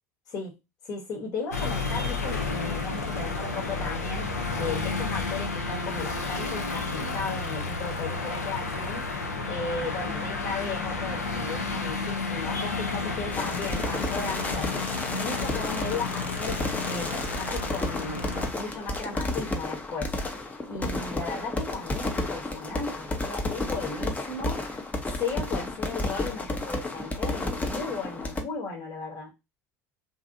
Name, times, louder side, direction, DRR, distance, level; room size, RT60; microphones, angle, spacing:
voice 1, 0.8-9.1 9.5-14.7 15.1-16.6 16.9-18.3 18.6-20.1 20.7-24.6 25.1-29.3, left 4 dB, 45° left, 1.0 m, -35 dB
sound 1, 1.5-18.5, left 4 dB, 85° left, 0.6 m, -31 dB
sound 2, 13.3-28.4, left 2 dB, 15° left, 0.6 m, -32 dB
2.6 x 2.4 x 2.6 m
hypercardioid pair, 75°, 9 cm